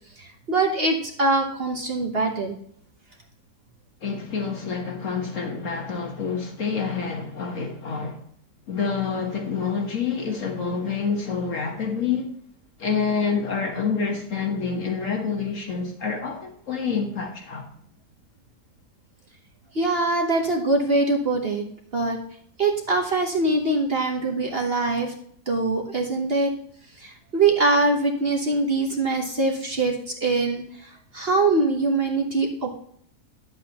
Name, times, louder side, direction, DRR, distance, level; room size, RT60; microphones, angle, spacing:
voice 1, 0.2-2.5 19.7-21.6 21.9-22.2 22.6-25.1 25.5-26.5 27.0-32.7, right 3 dB, 40° right, 1.1 m, -23 dB
voice 2, 4.0-8.2 8.7-12.3 12.8-17.7, left 5 dB, 55° left, 1.6 m, -27 dB
9.8 x 7.8 x 2.9 m
omnidirectional pair, 1.7 m